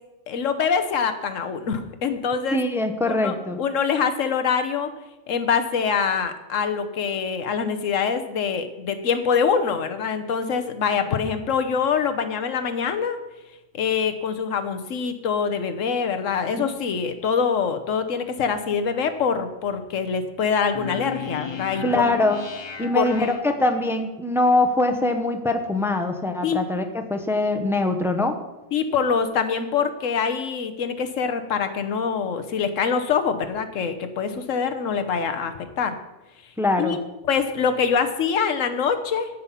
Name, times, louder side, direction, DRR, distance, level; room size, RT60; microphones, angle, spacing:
voice 1, 0.3-2.6 3.1-4.9 5.3-13.2 13.7-22.2 22.9-23.3 26.4-26.6 28.7-35.9 36.8-37.0 37.3-39.3, left 6 dB, 85° left, 8 dB, 1.3 m, -24 dB
voice 2, 2.5-3.6 16.6-16.7 21.8-22.4 22.8-28.3 36.6-37.0, left 2 dB, ahead, 6 dB, 0.8 m, -23 dB
sound 1, 20.7-24.0, left 6 dB, 30° left, 0.6 m, -35 dB
15.0 x 5.5 x 5.7 m, 1.1 s
omnidirectional pair, 1.3 m